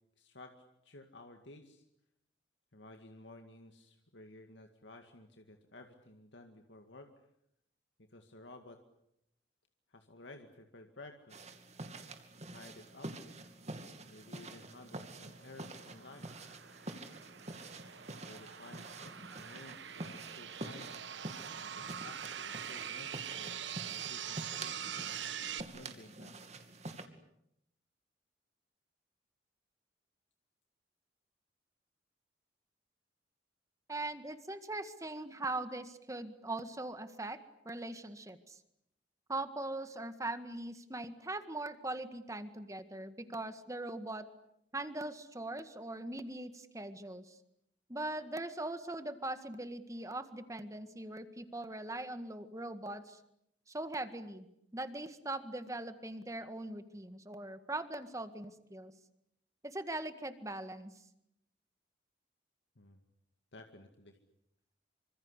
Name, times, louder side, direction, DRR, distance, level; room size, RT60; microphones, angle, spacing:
voice 1, 0.2-0.6 0.8-1.9 2.7-7.1 8.0-8.8 9.9-11.6 12.5-13.1 14.0-16.3 18.2-20.9 21.6-23.5 23.8-25.2 25.7-26.5 62.8-63.0 63.5-64.2, left 2 dB, 75° left, 5 dB, 2.1 m, -54 dB
sound 1, 11.3-27.1, right 2 dB, 35° right, 2.6 m, -47 dB
sound 2, 14.8-25.6, right 9 dB, 80° right, 1.2 m, -44 dB
voice 2, 33.9-37.4 37.7-38.6 39.3-44.3 44.7-47.4 47.9-53.2 53.7-54.5 54.7-58.9 59.6-60.9, right 2 dB, 15° right, 10 dB, 1.8 m, -41 dB
27.0 x 25.5 x 8.3 m, 0.78 s
head